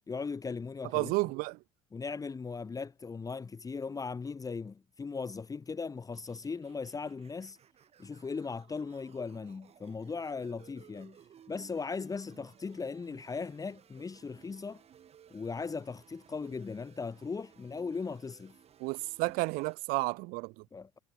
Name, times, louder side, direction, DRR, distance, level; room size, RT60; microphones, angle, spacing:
voice 1, 0.1-1.1 1.9-7.6 8.0-11.2 11.5-14.8 15.3-18.6 20.7-21.0, left 4 dB, 20° left, 1.4 m, -38 dB
voice 2, 0.9-1.6 18.8-20.6, right 25 dB, 65° right, 1.1 m, -31 dB
sound 1, 6.1-19.7, right 9 dB, 40° right, 2.9 m, -60 dB
hypercardioid pair, 80°, 16 cm